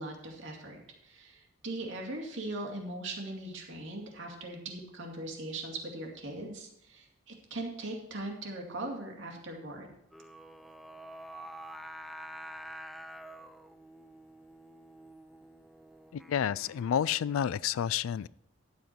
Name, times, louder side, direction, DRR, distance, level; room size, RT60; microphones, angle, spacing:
voice 1, 0.0-9.9, right 2 dB, 65° right, 1 dB, 2.3 m, -40 dB
Singing, 10.1-17.2, right 1 dB, ahead, 0.4 m, -48 dB
voice 2, 16.1-18.3, left 9 dB, 85° left, 21 dB, 0.3 m, -30 dB
11.5 x 8.0 x 4.5 m, 0.78 s
head